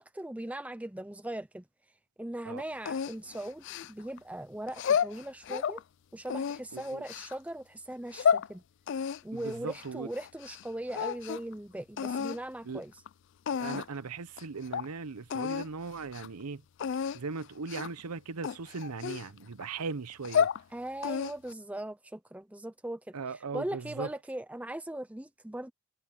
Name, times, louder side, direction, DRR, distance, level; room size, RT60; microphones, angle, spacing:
voice 1, 0.0-1.6 2.2-5.8 6.1-8.6 9.2-12.9 20.7-23.0 23.3-25.7, right 1 dB, 5° right, 0.5 m, -39 dB
sound 1, 2.9-4.2 4.7-5.8 6.3-7.3 7.9-8.5 8.9-10.6 10.9-11.5 12.0-12.4 13.1-13.2 13.5-14.0 14.4-14.5 14.7-14.9 15.3-15.7 16.0-16.3 16.8-17.2 17.7-18.0 18.4-19.6 20.1-20.6 21.0-21.5, left 7 dB, 55° left, 0.3 m, -31 dB
voice 2, 6.7-7.0 9.3-10.1 12.6-12.8 13.6-16.6 17.1-20.5 23.1-24.1, right 4 dB, 90° right, 0.8 m, -38 dB
head